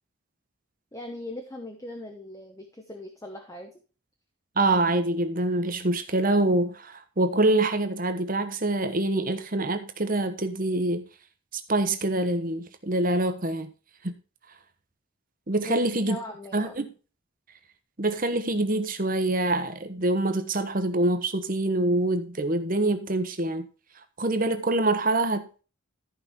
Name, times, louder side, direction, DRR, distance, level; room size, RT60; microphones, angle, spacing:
voice 1, 0.9-3.7 15.6-15.8 16.1-16.7, left 2 dB, 15° left, 1.0 m, -39 dB
voice 2, 4.6-11.1 11.5-13.7 14.0-14.1 15.5-16.2 16.5-16.9 18.0-23.7 24.2-25.6, right 2 dB, 40° right, 1.1 m, -25 dB
13.5 x 5.4 x 4.3 m
head